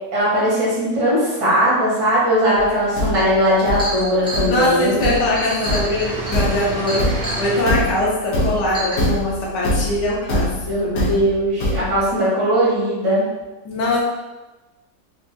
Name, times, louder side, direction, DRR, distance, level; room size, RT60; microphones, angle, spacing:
voice 1, 0.1-5.1 10.6-13.2, equal, 80° right, -8 dB, 1.9 m, -19 dB
sound 1, 2.2-3.1 4.0-4.1 4.4-7.6, right 2 dB, 65° right, 1.0 m, -32 dB
Thump thud, 2.6-12.1, left 1 dB, 60° left, 1.1 m, -24 dB
Chink clink, 3.5-7.5 8.2-8.3 8.7-9.0, equal, 5° right, 0.5 m, -30 dB
voice 2, 4.4-7.1 7.4-11.1 13.6-14.0, left 1 dB, 80° left, -4 dB, 1.4 m, -22 dB
4.6 x 2.2 x 2.6 m, 1.1 s
omnidirectional pair, 1.9 m